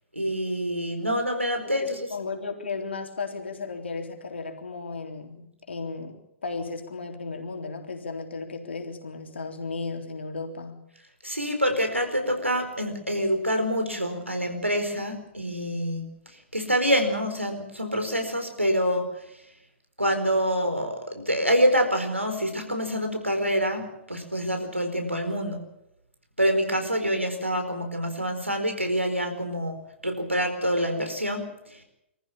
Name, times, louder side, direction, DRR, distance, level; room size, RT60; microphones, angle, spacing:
voice 1, 0.1-2.0 11.2-19.4 20.0-25.6 26.4-29.8 30.0-31.8, equal, 90° right, 5 dB, 4.6 m, -26 dB
voice 2, 1.6-10.9, left 4 dB, 65° left, 4 dB, 3.7 m, -35 dB
24.5 x 14.5 x 8.9 m, 0.84 s
figure-of-eight pair, 110°, 6 cm